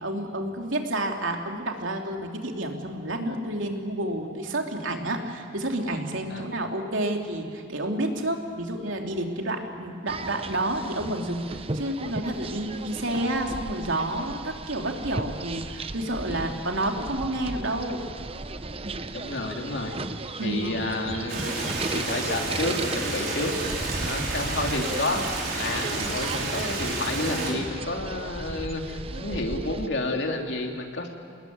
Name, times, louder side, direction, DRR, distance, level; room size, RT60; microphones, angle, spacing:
voice 1, 0.0-18.0 20.4-20.8, right 1 dB, 85° right, 2 dB, 3.0 m, -30 dB
sound 1, 10.1-29.9, right 2 dB, 30° right, 0.8 m, -36 dB
voice 2, 16.3-16.6 19.1-20.0 20.4-23.5 24.0-31.1, left 2 dB, 60° left, 2 dB, 2.9 m, -30 dB
Stream, 21.3-27.5, right 3 dB, 50° right, 5.2 m, -31 dB
27.5 x 20.0 x 9.5 m, 2.4 s
head